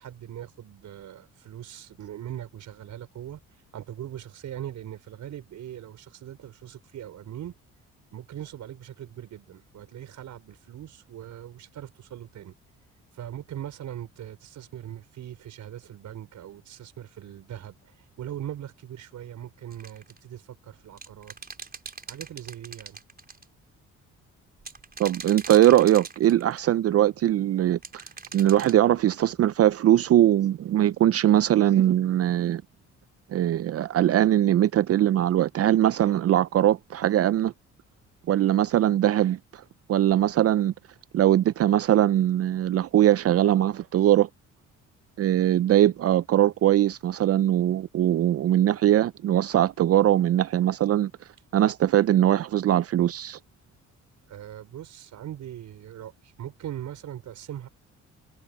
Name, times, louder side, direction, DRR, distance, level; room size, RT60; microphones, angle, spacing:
voice 1, 0.0-3.4 3.7-7.6 8.1-12.5 13.1-21.4 22.1-23.0 54.3-57.7, right 11 dB, 70° right, 5.4 m, -40 dB
sound 1, 19.7-20.2 21.0-23.4 24.6-26.6 27.8-28.8, right 4 dB, 30° right, 4.8 m, -41 dB
voice 2, 25.0-28.0 28.3-32.6 33.3-37.5 38.3-39.6 39.9-40.7 41.1-44.3 45.2-51.1 51.5-53.4, right 12 dB, 50° right, 0.5 m, -21 dB
cardioid pair, 90°, 30 cm